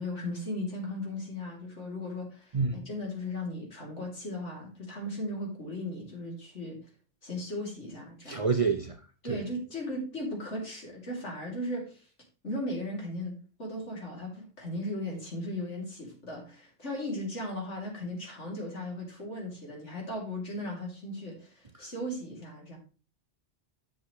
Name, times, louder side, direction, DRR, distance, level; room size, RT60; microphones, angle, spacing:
voice 1, 0.0-6.8 7.2-8.5 9.2-12.1 12.4-13.3 13.6-22.8, left 1 dB, 80° left, 3.4 m, -37 dB
voice 2, 8.3-9.0 9.3-9.4 21.8-21.9, right 5 dB, 40° right, 0.5 m, -28 dB
9.8 x 6.4 x 3.2 m
omnidirectional pair, 1.2 m